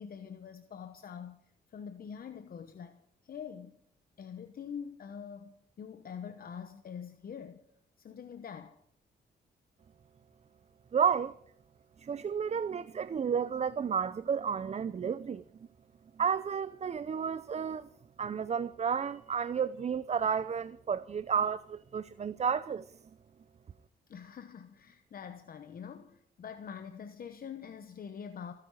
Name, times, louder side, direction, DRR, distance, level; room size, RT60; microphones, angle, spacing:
voice 1, 0.0-1.4 1.7-3.0 3.2-3.8 4.2-7.6 8.0-8.8 24.1-28.5, left 7 dB, 55° left, 1.0 m, -45 dB
voice 2, 10.9-11.3 12.0-15.4 16.2-17.9 18.2-22.9, right 7 dB, 35° right, 0.5 m, -31 dB
26.5 x 9.9 x 4.8 m
cardioid pair, 90°, 18 cm